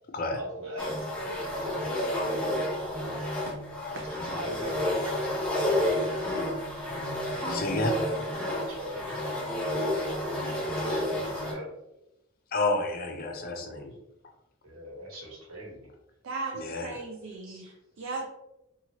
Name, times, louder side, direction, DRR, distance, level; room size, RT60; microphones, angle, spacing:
voice 1, 0.3-1.7 2.9-3.5 4.2-4.8 5.0-5.4 8.7-9.3 9.8-11.7 13.4-13.9 14.6-15.9 17.4-17.6, equal, 85° right, -2 dB, 1.1 m, -42 dB
sound 1, 0.8-11.5, left 1 dB, 5° left, 0.7 m, -30 dB
voice 2, 7.3-8.0 12.5-14.0 16.5-16.9, left 2 dB, 45° left, 3 dB, 0.5 m, -30 dB
voice 3, 16.2-18.3, right 3 dB, 60° right, 2 dB, 0.4 m, -37 dB
2.8 x 2.4 x 2.8 m, 0.90 s
head